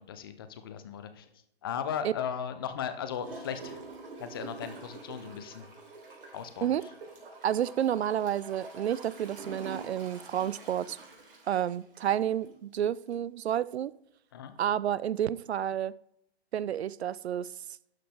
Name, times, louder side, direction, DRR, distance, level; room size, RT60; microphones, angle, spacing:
voice 1, 0.1-1.3 1.6-3.8 4.2-5.6 6.3-6.7 14.3-14.5, left 8 dB, 25° left, 0.5 m, -37 dB
Gurgling / Toilet flush, 3.2-12.6 13.1-13.2, right 3 dB, 60° right, 3.1 m, -47 dB
voice 2, 7.4-11.0 11.5-13.9 14.6-15.9 16.5-17.5, right 10 dB, 80° right, 0.5 m, -30 dB
11.5 x 5.0 x 3.4 m
hypercardioid pair, 145°, 32 cm